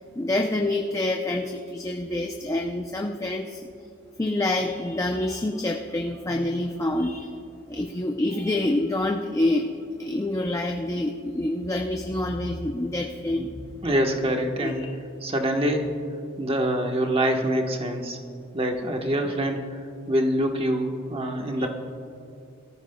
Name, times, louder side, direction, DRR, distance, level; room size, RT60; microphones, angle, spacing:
voice 1, 0.2-3.7 4.2-7.4 7.7-13.7 14.6-14.9 21.6-21.7, left 1 dB, 15° left, 3 dB, 0.5 m, -27 dB
voice 2, 13.8-14.8 15.2-15.9 16.4-18.2 18.5-21.7, equal, 30° right, 2 dB, 1.2 m, -25 dB
23.5 x 14.0 x 2.3 m, 2.6 s
head